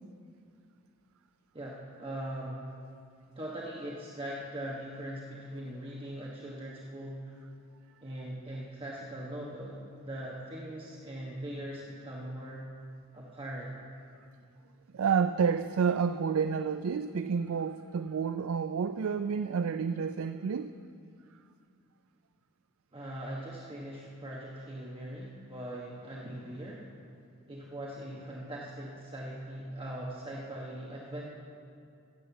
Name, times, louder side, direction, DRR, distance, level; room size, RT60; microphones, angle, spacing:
voice 1, 1.5-2.7 3.3-7.3 8.0-12.7 13.1-13.7 22.9-26.9 27.5-31.3, right 1 dB, 25° right, -4 dB, 1.1 m, -41 dB
voice 2, 14.9-20.7, right 6 dB, 70° right, 10 dB, 0.4 m, -29 dB
16.5 x 7.6 x 7.0 m, 2.4 s
head